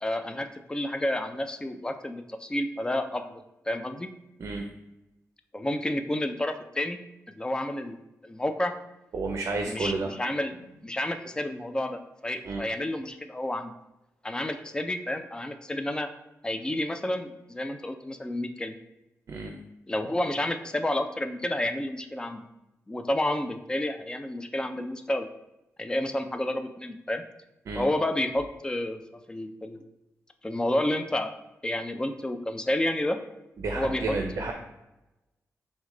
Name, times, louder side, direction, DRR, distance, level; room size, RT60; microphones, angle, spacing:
voice 1, 0.0-4.1 5.5-7.0 7.4-8.7 9.7-10.5 10.8-13.7 14.2-16.1 16.4-18.8 19.9-22.4 22.9-25.3 25.8-27.2 27.7-29.0 29.3-29.8 30.4-31.3 31.6-33.2 33.7-34.5, left 1 dB, 15° left, 8 dB, 0.3 m, -30 dB
voice 2, 9.1-10.1 12.4-12.6 19.3-19.5 27.7-27.8 33.6-34.5, right 3 dB, 60° right, 3 dB, 0.5 m, -31 dB
6.0 x 2.2 x 3.7 m, 0.95 s
wide cardioid pair, 125°, 6 cm